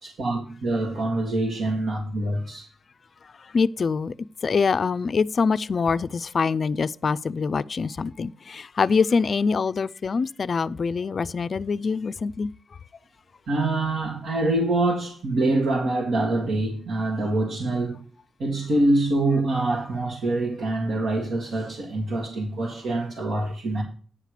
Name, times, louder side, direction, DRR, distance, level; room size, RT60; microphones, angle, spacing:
voice 1, 0.0-2.7 13.5-18.0 18.4-23.8, right 2 dB, 75° right, 2.0 m, -25 dB
voice 2, 3.5-4.1 4.4-12.5, left 5 dB, 45° left, 0.3 m, -24 dB
9.8 x 4.9 x 6.5 m
wide cardioid pair, 130°, 0 cm